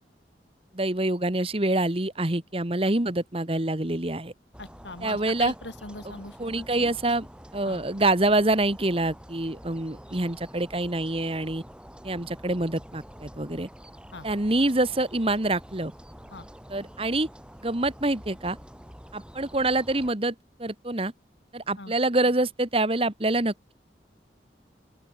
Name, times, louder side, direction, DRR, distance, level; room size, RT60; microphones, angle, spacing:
voice 1, 0.7-4.3 5.0-5.5 6.4-7.3 7.5-11.6 12.0-13.7 14.2-15.9 16.7-17.3 17.6-18.6 19.1-21.1 21.5-23.7, right 2 dB, 30° right, 1.6 m, -26 dB
sound 1, 4.5-20.1, equal, 5° right, 6.0 m, -47 dB
voice 2, 4.6-6.9 7.6-7.8 14.1-14.3 16.3-16.5 21.8-21.9, left 3 dB, 85° left, 4.4 m, -41 dB
open air
head